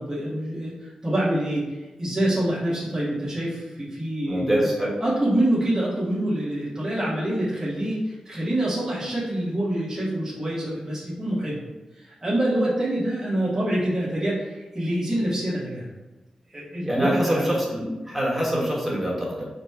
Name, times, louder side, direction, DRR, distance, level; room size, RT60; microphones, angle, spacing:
voice 1, 0.0-4.7 5.0-11.6 11.9-15.9 16.5-17.5, right 1 dB, 20° right, -9 dB, 1.2 m, -26 dB
voice 2, 4.3-5.0 16.9-19.4, equal, 5° right, -5 dB, 1.3 m, -24 dB
4.0 x 2.2 x 4.5 m, 1.1 s
wide cardioid pair, 90°, 2 cm